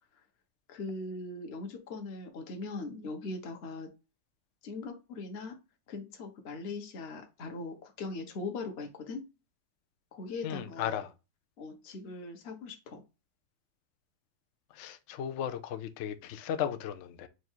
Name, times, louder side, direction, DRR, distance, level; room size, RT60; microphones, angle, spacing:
voice 1, 0.7-3.9 4.6-5.6 5.9-9.2 10.1-11.0 11.6-13.0, left 3 dB, 45° left, 1.0 m, -40 dB
voice 2, 10.4-11.1 14.7-17.3, left 9 dB, 75° left, 0.6 m, -35 dB
4.6 x 2.6 x 4.4 m
omnidirectional pair, 1.9 m